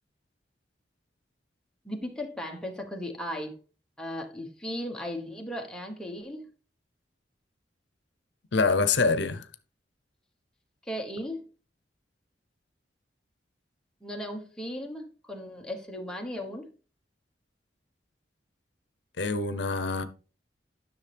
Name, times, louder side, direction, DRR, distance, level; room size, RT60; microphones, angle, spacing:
voice 1, 1.8-3.6 4.0-6.5 10.9-11.4 14.0-16.7, equal, 5° left, 1.1 m, -36 dB
voice 2, 8.5-9.5 19.2-20.0, left 4 dB, 75° left, 0.7 m, -25 dB
10.5 x 6.3 x 3.4 m
head